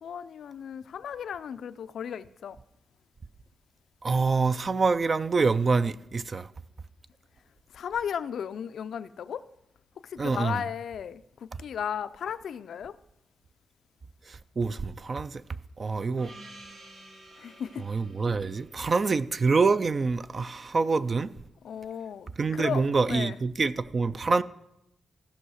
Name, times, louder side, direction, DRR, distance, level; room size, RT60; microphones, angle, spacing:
voice 1, 0.0-2.6 7.7-9.5 10.0-13.0 17.4-17.9 21.6-22.8 23.1-23.4, left 8 dB, 75° left, 0.4 m, -35 dB
voice 2, 4.0-6.5 10.2-10.6 11.5-11.6 14.3-15.4 15.8-16.3 17.8-21.3 22.4-24.4, right 4 dB, 35° right, 0.3 m, -26 dB
Gong, 16.2-20.5, right 2 dB, 70° right, 2.4 m, -52 dB
14.5 x 5.6 x 6.4 m
wide cardioid pair, 155°, 0 cm